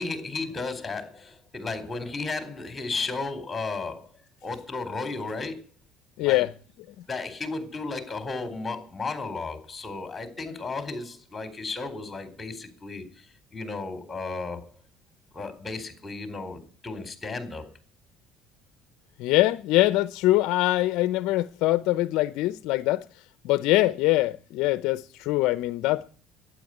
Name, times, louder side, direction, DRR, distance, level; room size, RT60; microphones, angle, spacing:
voice 1, 0.0-4.1 4.4-5.6 6.2-6.5 7.1-13.3 13.5-14.7 15.3-17.7, left 3 dB, 20° left, 4.3 m, -34 dB
voice 2, 6.2-6.5 19.2-23.0 23.4-26.1, left 17 dB, 70° left, 0.7 m, -23 dB
12.0 x 9.9 x 9.4 m
supercardioid pair, 100°, 0 cm